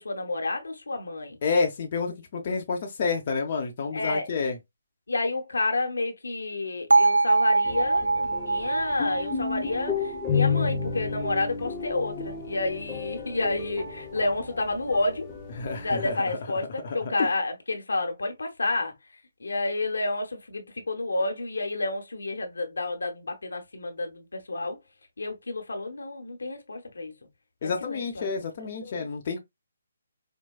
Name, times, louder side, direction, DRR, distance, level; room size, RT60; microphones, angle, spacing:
voice 1, 0.0-1.4 3.9-4.3 5.1-15.3 15.7-18.9 19.4-24.8 25.2-27.1 27.6-28.3 28.8-29.1, left 2 dB, 80° left, 0.9 m, -30 dB
voice 2, 1.4-4.6 15.6-16.4 16.8-17.3 27.6-29.4, left 4 dB, 45° left, 0.7 m, -29 dB
Bell, 6.9-11.0, right 3 dB, 90° right, 0.3 m, -24 dB
sound 1, 7.6-16.1, left 5 dB, 10° left, 1.0 m, -32 dB
4.6 x 2.2 x 2.3 m
figure-of-eight pair, 145°, 0 cm